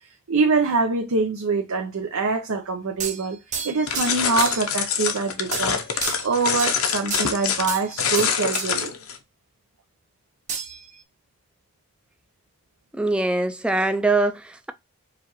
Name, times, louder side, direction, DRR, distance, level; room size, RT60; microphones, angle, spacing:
voice 1, 0.3-3.4 3.6-8.9, right 4 dB, 90° right, 0.7 m, -24 dB
sound 1, 3.0-4.7 5.5-5.7 6.0-6.8 7.1-7.9 8.1-8.7 10.5-11.0, right 6 dB, 35° right, 0.7 m, -31 dB
sound 2, 3.9-9.2, left 7 dB, 85° left, 0.7 m, -25 dB
voice 2, 13.0-14.7, right 2 dB, 5° right, 0.3 m, -23 dB
4.9 x 2.4 x 3.0 m
head